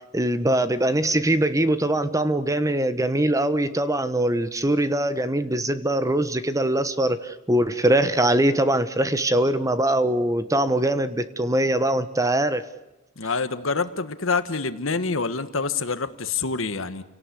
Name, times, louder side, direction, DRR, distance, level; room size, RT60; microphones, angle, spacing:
voice 1, 0.1-12.6, right 1 dB, 15° right, 12 dB, 1.2 m, -22 dB
voice 2, 13.2-17.0, left 4 dB, 75° left, 11 dB, 1.5 m, -26 dB
30.0 x 18.0 x 8.3 m, 0.97 s
head